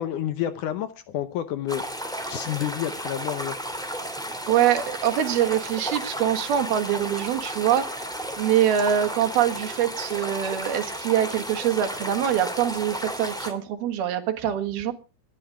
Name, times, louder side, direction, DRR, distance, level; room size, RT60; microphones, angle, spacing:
voice 1, 0.0-1.8 2.3-3.6, left 11 dB, 75° left, 2.0 m, -29 dB
sound 1, 1.7-13.5, equal, ahead, 1.7 m, -33 dB
voice 2, 4.5-7.9 8.4-14.9, right 10 dB, 80° right, 3.5 m, -24 dB
19.5 x 10.5 x 4.9 m
omnidirectional pair, 4.4 m